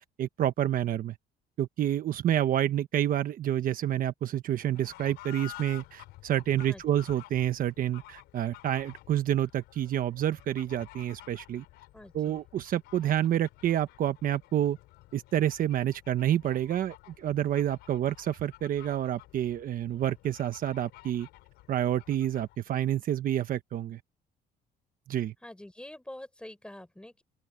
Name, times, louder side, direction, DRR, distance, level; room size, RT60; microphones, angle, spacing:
voice 1, 0.2-1.1 1.6-11.6 12.1-14.8 15.1-21.3 21.7-24.0 25.1-25.3, right 11 dB, 55° right, 1.1 m, -28 dB
Fowl / Bird, 4.6-22.6, left 18 dB, 90° left, 4.2 m, -52 dB
voice 2, 11.9-12.4 25.4-27.2, left 1 dB, 5° left, 5.2 m, -46 dB
open air
cardioid pair, 110°, 17 cm